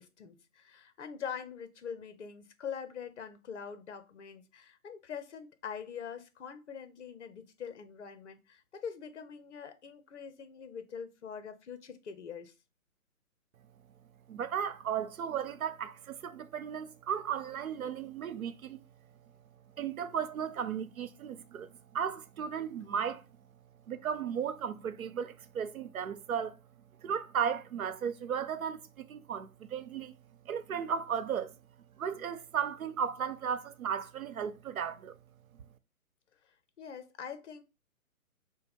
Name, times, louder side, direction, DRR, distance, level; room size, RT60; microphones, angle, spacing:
voice 1, 0.0-12.5 36.8-37.6, left 7 dB, 50° left, 0.8 m, -43 dB
voice 2, 14.3-18.8 19.8-23.2 23.9-26.6 27.0-30.1 30.4-31.5 32.0-35.2, right 7 dB, 70° right, 0.7 m, -35 dB
5.4 x 2.2 x 3.3 m
hypercardioid pair, 160°, 44 cm